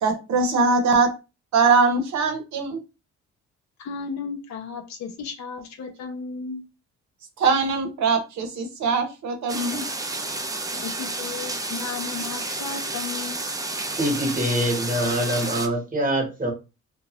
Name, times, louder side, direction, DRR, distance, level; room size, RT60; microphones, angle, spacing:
voice 1, 0.0-1.1 1.5-2.8 7.4-9.8, right 4 dB, 65° right, 5 dB, 0.8 m, -21 dB
voice 2, 3.8-6.6 10.8-13.4, left 5 dB, 65° left, 3 dB, 0.8 m, -34 dB
sound 1, 9.5-15.7, right 2 dB, 10° right, 0.4 m, -31 dB
voice 3, 14.0-16.5, equal, 25° right, 3 dB, 1.2 m, -24 dB
2.6 x 2.3 x 3.0 m, 0.28 s
cardioid pair, 90°, 30 cm